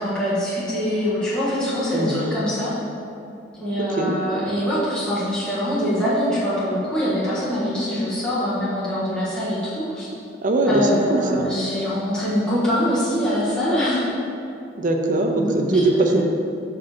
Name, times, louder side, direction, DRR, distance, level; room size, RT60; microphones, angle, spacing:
voice 1, 0.0-2.7 3.6-10.1 10.7-14.0 15.3-16.2, equal, 5° left, -12 dB, 1.6 m, -24 dB
voice 2, 1.9-2.4 4.0-4.2 10.4-11.5 14.8-16.2, right 2 dB, 45° right, 3 dB, 0.6 m, -21 dB
5.8 x 5.0 x 4.4 m, 2.6 s
head